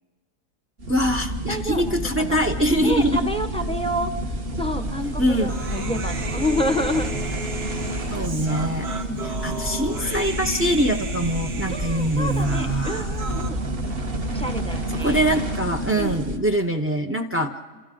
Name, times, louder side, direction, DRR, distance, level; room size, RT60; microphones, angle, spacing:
sound 1, 0.8-16.4, right 1 dB, 40° right, 1.5 m, -29 dB
voice 1, 0.9-3.3 5.2-5.5 8.1-8.9 9.4-13.1 15.0-17.5, equal, 15° right, 6 dB, 0.4 m, -23 dB
voice 2, 1.5-2.4 2.8-7.1 7.5-7.8 8.8-9.3 11.7-13.6 14.3-15.2 16.0-16.2 17.3-17.5, equal, 5° left, 6 dB, 1.0 m, -29 dB
Human voice, 5.5-13.5, right 3 dB, 75° right, 2.3 m, -35 dB
28.5 x 28.0 x 3.8 m, 1.4 s
omnidirectional pair, 1.7 m